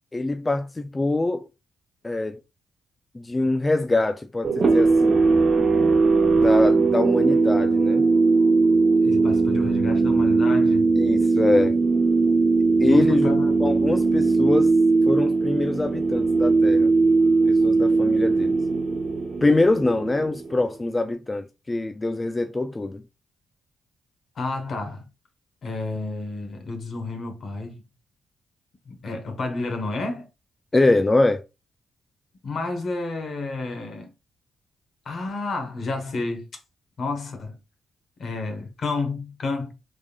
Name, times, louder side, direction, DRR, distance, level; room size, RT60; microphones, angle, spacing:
voice 1, 0.1-1.4 2.0-2.4 3.2-5.3 6.4-8.1 11.0-11.8 12.8-13.3 13.6-14.7 15.1-16.9 17.5-18.6 19.4-23.0 30.7-31.4, left 2 dB, 25° left, 0.3 m, -24 dB
sound 1, 4.4-20.7, right 3 dB, 50° right, 0.9 m, -19 dB
voice 2, 9.0-10.9 12.8-13.5 24.3-25.0 25.6-27.8 28.8-30.3 32.4-34.1 35.0-36.5 37.0-37.6 38.2-39.7, left 3 dB, 60° left, 1.2 m, -30 dB
3.5 x 3.4 x 2.4 m
cardioid pair, 70°, 0 cm